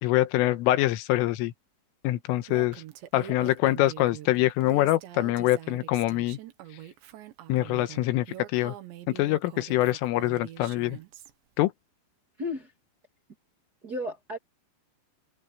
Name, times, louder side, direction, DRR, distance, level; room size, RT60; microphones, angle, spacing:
voice 1, 0.0-1.5 2.0-2.8 3.1-6.4 7.5-8.3 8.5-8.8 9.1-11.0 11.6-11.7, left 16 dB, 85° left, 3.6 m, -24 dB
Female speech woman speaking, 2.5-11.3, right 13 dB, 70° right, 3.5 m, -44 dB
voice 2, 12.4-12.7 13.8-14.4, left 1 dB, 30° right, 2.0 m, -33 dB
omnidirectional pair, 5.8 m